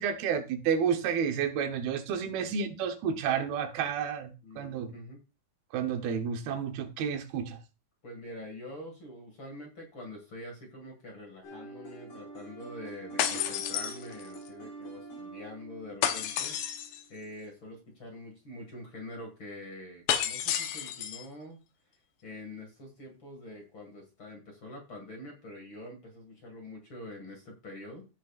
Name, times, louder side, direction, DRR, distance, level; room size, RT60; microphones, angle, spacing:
voice 1, 0.0-4.9 5.7-7.6, right 7 dB, 85° right, 2.9 m, -31 dB
voice 2, 4.4-5.2 8.0-16.6 17.1-21.6 22.2-28.1, left 1 dB, 40° left, 2.3 m, -45 dB
sound 1, 11.4-17.3, right 2 dB, 55° left, 6.5 m, -46 dB
sound 2, 13.2-14.5 16.0-17.0 20.1-21.3, left 10 dB, 80° left, 2.7 m, -31 dB
16.0 x 6.3 x 2.4 m
omnidirectional pair, 4.3 m